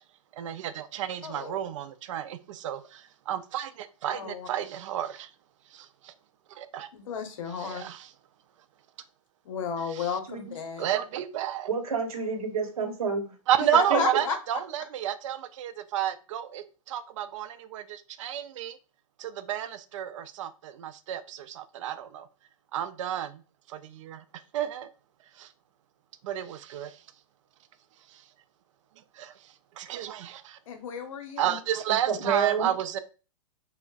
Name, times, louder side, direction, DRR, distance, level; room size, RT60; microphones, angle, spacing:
voice 1, 0.3-5.3 5.7-6.1 6.5-6.9 7.6-8.1 9.9-10.1 10.8-11.7 13.5-18.8 19.2-22.3 22.7-23.4 23.7-24.2 24.5-24.9 25.4-25.5 26.2-27.0 28.1-28.2 29.1-30.6 31.4-33.0, right 11 dB, 60° right, 0.4 m, -31 dB
voice 2, 1.2-1.6 4.1-4.5 6.9-7.8 9.4-10.9 13.7-14.3 30.7-31.5, left 6 dB, 65° left, 0.7 m, -32 dB
voice 3, 11.7-13.3 13.9-14.0 31.9-32.7, right 6 dB, 85° right, 0.9 m, -29 dB
3.3 x 2.1 x 2.3 m
hypercardioid pair, 130°, 18 cm